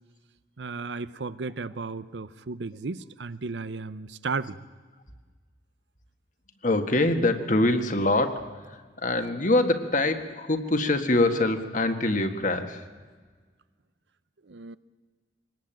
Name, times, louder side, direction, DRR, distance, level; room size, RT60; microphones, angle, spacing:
voice 1, 0.6-4.6 14.5-14.8, right 4 dB, 85° right, 15 dB, 0.7 m, -34 dB
voice 2, 6.6-12.9, left 2 dB, 45° left, 7 dB, 1.7 m, -24 dB
24.5 x 19.5 x 8.9 m, 1.5 s
head